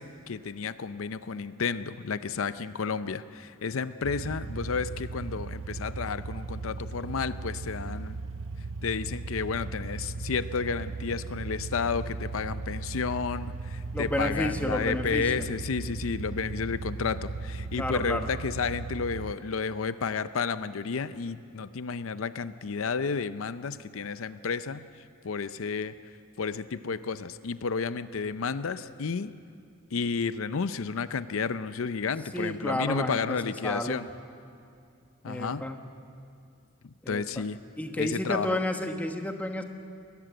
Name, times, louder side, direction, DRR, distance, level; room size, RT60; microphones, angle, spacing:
voice 1, 0.0-8.2 8.8-24.9 25.2-25.9 26.4-29.3 29.9-34.1 35.2-35.6 37.1-37.6 38.0-38.6, left 5 dB, 80° left, 13 dB, 0.5 m, -31 dB
sound 1, 4.0-19.3, right 3 dB, 60° right, 0.5 m, -37 dB
voice 2, 13.9-15.5 17.7-18.3 32.3-34.0 35.2-35.8 37.0-37.4 37.8-39.6, left 1 dB, 5° left, 4 dB, 1.1 m, -31 dB
21.5 x 14.5 x 9.1 m, 2.4 s
head